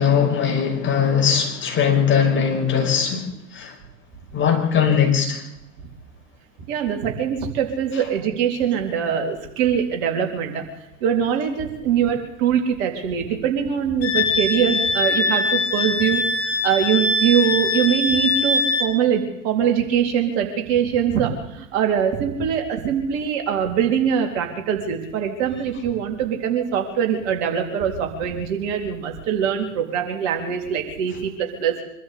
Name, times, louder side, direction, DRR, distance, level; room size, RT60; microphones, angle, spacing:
voice 1, 0.0-3.7 4.3-5.4, left 7 dB, 30° left, 2 dB, 5.9 m, -20 dB
voice 2, 6.7-10.6 11.0-31.8, right 8 dB, 55° right, 4 dB, 4.0 m, -23 dB
Wind instrument woodwind instrument, 14.0-18.9, left 2 dB, 50° left, 4.1 m, -22 dB
25.0 x 12.5 x 8.7 m, 0.86 s
figure-of-eight pair, 85°, 41 cm